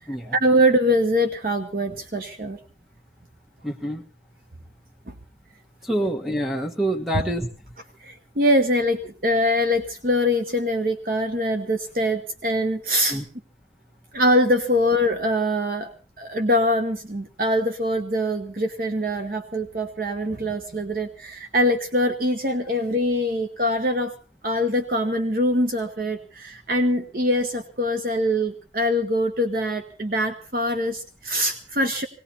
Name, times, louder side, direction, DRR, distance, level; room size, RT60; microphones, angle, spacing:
voice 1, 0.4-2.6 5.1-5.2 7.1-7.2 8.0-13.2 14.1-15.9 16.2-24.1 24.4-32.1, equal, 55° right, 7 dB, 1.1 m, -23 dB
voice 2, 3.6-4.0 5.8-7.5 13.1-13.2, right 1 dB, ahead, 4 dB, 1.4 m, -26 dB
18.5 x 17.5 x 4.2 m, 0.36 s
head